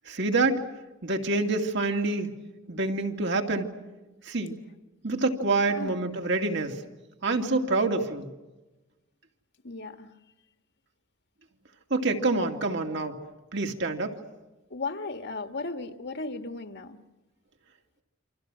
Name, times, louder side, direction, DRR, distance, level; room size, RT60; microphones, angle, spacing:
voice 1, 0.1-0.6 1.0-2.3 2.7-3.7 4.3-4.5 5.0-6.8 7.2-8.3 11.9-13.2 13.5-14.2, right 3 dB, 60° right, 4 dB, 2.6 m, -26 dB
voice 2, 9.6-10.1 14.7-17.0, left 3 dB, 55° left, 7 dB, 1.7 m, -36 dB
28.5 x 26.0 x 6.3 m, 1.1 s
head